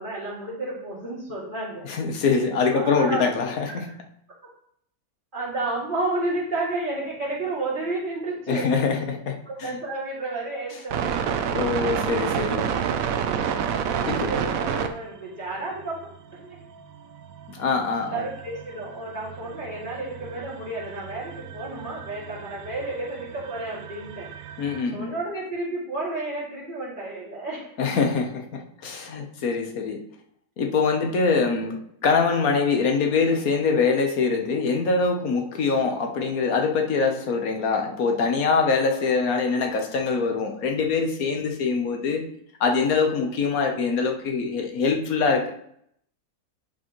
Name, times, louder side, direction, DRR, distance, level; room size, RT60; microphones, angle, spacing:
voice 1, 0.0-1.9 2.7-3.3 3.7-3.8 5.3-9.0 9.5-11.2 14.1-16.0 16.3-16.5 18.1-24.6 24.9-27.7, right 2 dB, 35° right, -7 dB, 2.7 m, -31 dB
voice 2, 1.8-3.9 8.5-9.8 11.5-12.7 14.0-14.3 17.5-18.2 24.6-25.1 27.8-30.0 30.6-42.2 42.6-45.5, left 4 dB, 70° left, 3 dB, 1.5 m, -24 dB
sound 1, 10.9-15.1 15.5-24.8, right 7 dB, 70° right, 1.0 m, -30 dB
10.0 x 5.0 x 3.1 m, 0.69 s
omnidirectional pair, 1.6 m